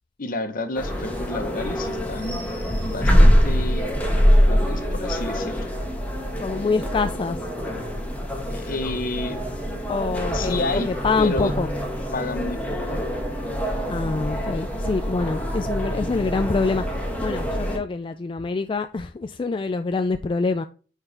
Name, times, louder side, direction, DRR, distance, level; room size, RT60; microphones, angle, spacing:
voice 1, 0.2-2.4 2.8-3.9 4.5-5.7 8.5-9.4 10.3-10.9 11.2-11.5 12.1-12.8, left 2 dB, 50° left, 1.0 m, -30 dB
sound 1, 0.7-17.8, equal, 10° left, 1.7 m, -24 dB
voice 2, 6.4-7.5 9.9-11.7 13.9-16.8 17.2-20.6, left 4 dB, 30° left, 0.3 m, -25 dB
9.5 x 4.6 x 3.3 m
head